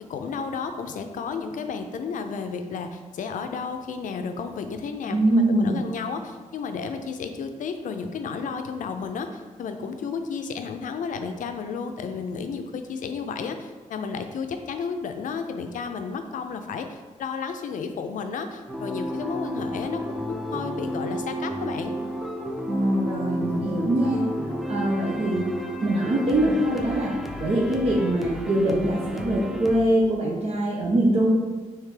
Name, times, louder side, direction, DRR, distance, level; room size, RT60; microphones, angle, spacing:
voice 1, 0.1-21.9, left 5 dB, 80° left, 7 dB, 0.4 m, -32 dB
voice 2, 5.1-5.8 22.7-24.3 24.7-25.5 25.8-31.3, right 1 dB, 50° right, -4 dB, 0.7 m, -23 dB
sound 1, 18.7-29.8, equal, ahead, 0.4 m, -32 dB
3.3 x 3.2 x 4.8 m, 1.3 s
wide cardioid pair, 115°, 13 cm